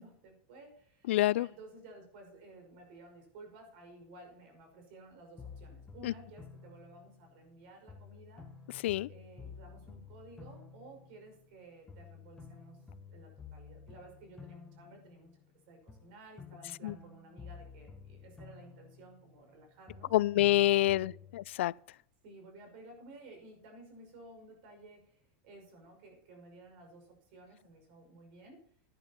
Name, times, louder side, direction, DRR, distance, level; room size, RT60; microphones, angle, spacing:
voice 1, 0.0-8.5 9.1-12.8 13.1-15.3 15.7-20.1 20.6-21.1 22.2-28.6, right 2 dB, 60° right, 5.5 m, -54 dB
voice 2, 1.1-1.5 6.0-6.1 8.7-9.1 16.8-17.0 20.1-21.7, left 15 dB, 90° left, 0.3 m, -27 dB
sound 1, 5.4-7.5 7.9-11.6 11.9-15.5 15.9-19.6 19.9-21.5, left 5 dB, 10° left, 1.1 m, -52 dB
12.0 x 10.5 x 4.4 m
supercardioid pair, 155°, 6 cm